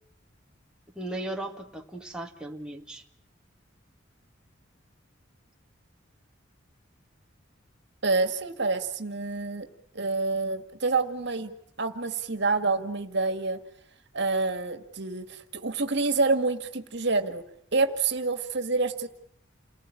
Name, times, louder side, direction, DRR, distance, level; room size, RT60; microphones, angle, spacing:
voice 1, 1.0-3.0, right 1 dB, 5° right, 1 dB, 2.1 m, -36 dB
voice 2, 8.0-9.7 9.9-13.6 14.1-17.4 17.7-19.1, right 3 dB, 60° right, 9 dB, 2.0 m, -27 dB
29.5 x 20.0 x 9.9 m, 0.72 s
head